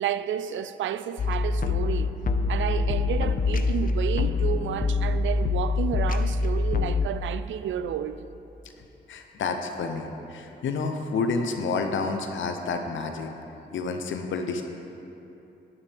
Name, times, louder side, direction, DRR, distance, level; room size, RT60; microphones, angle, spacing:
voice 1, 0.0-2.1 2.5-8.2, right 9 dB, 80° right, 0.4 m, -31 dB
sound 1, 1.2-7.1, left 3 dB, 45° left, 0.6 m, -25 dB
voice 2, 9.1-13.3 13.7-14.6, left 4 dB, 80° left, 0.8 m, -29 dB
11.5 x 9.6 x 3.5 m
cardioid pair, 60°, 19 cm